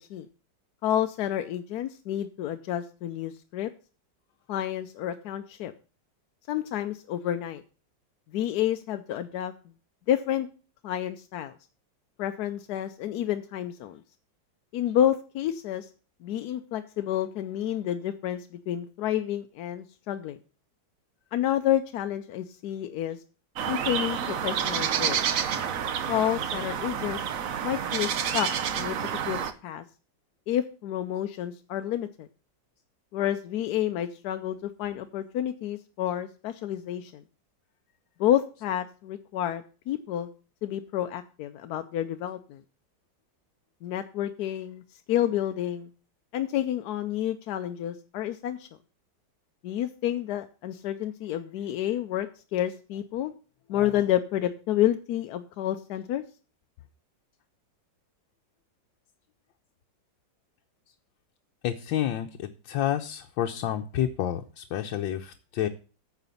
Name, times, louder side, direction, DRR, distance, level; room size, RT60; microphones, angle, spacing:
voice 1, 0.8-3.7 4.5-5.7 6.5-7.6 8.3-9.5 10.1-10.5 10.8-11.5 12.2-14.0 14.7-15.9 16.2-20.4 21.3-23.2 23.7-25.2 26.1-27.2 27.6-28.5 28.7-29.0 29.3-29.8 30.5-32.3 33.1-37.2 38.2-40.3 40.6-42.6 43.8-44.8 45.1-45.9 46.3-48.7 49.6-53.3 53.7-56.2, left 11 dB, 70° left, 8 dB, 1.0 m, -29 dB
sound 1, 23.6-29.5, right 8 dB, 60° right, 1.0 m, -29 dB
voice 2, 61.6-65.7, left 11 dB, 85° left, 4 dB, 1.4 m, -29 dB
9.2 x 4.9 x 6.8 m, 0.37 s
omnidirectional pair, 2.0 m